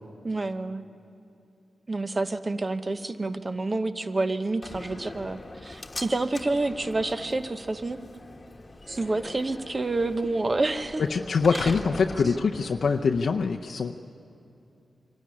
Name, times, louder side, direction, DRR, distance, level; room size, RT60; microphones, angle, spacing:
voice 1, 0.2-0.9 1.9-8.0 8.9-11.0 11.5-11.7, right 2 dB, 35° right, 10 dB, 1.0 m, -28 dB
Slam, 4.6-13.6, left 2 dB, 30° left, 1.4 m, -42 dB
voice 2, 11.1-13.9, left 5 dB, 70° left, 2 dB, 0.6 m, -24 dB
24.0 x 13.0 x 9.9 m, 2.7 s
cardioid pair, 65°, 0 cm